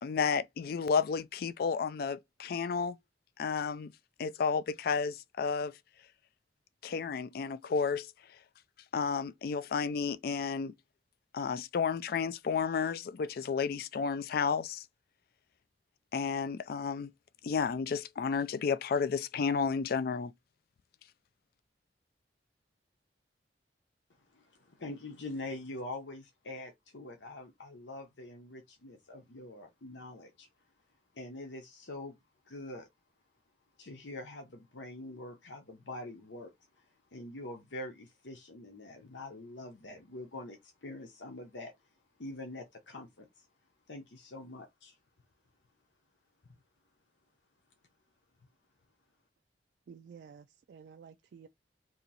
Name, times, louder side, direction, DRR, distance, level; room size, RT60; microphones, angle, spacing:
voice 1, 0.0-3.0 3.4-3.9 4.2-5.7 6.8-8.1 8.9-10.7 11.3-14.8 16.1-17.1 17.4-20.3, left 5 dB, 55° left, 0.3 m, -32 dB
voice 2, 24.2-30.5 31.1-32.2 32.4-32.9 33.8-36.9 37.1-41.7 42.2-43.5 43.9-45.0, left 2 dB, 90° left, 0.8 m, -44 dB
voice 3, 49.9-51.5, right 6 dB, 65° right, 0.3 m, -52 dB
2.9 x 2.7 x 4.0 m
head